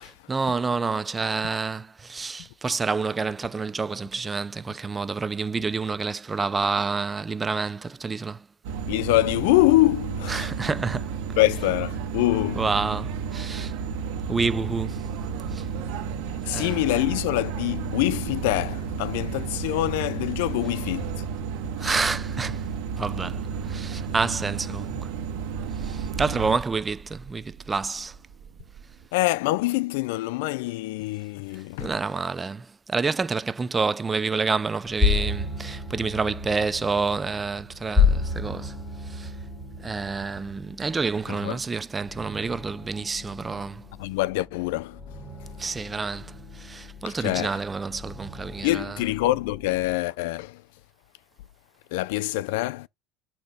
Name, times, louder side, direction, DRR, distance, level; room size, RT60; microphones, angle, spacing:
voice 1, 0.0-8.5 10.3-11.1 12.6-13.7 14.3-15.0 15.5-15.6 16.5-16.8 21.8-22.6 22.9-25.0 25.8-28.1 31.8-38.8 39.0-39.3 39.8-43.9 45.6-48.9, right 4 dB, 20° right, 0.4 m, -28 dB
sound 1, 8.6-26.5, right 6 dB, 80° right, 1.4 m, -32 dB
voice 2, 8.9-10.5 11.4-12.7 16.4-21.3 21.6-22.0 29.1-32.0 41.3-41.6 44.0-45.0 47.1-47.6 48.6-50.6 51.9-52.9, left 18 dB, 90° left, 0.3 m, -25 dB
Wind, 14.9-29.1, right 7 dB, 50° right, 1.2 m, -46 dB
sound 2, 34.8-50.0, left 4 dB, 10° left, 3.4 m, -31 dB
6.5 x 3.0 x 5.5 m
cardioid pair, 125°, 0 cm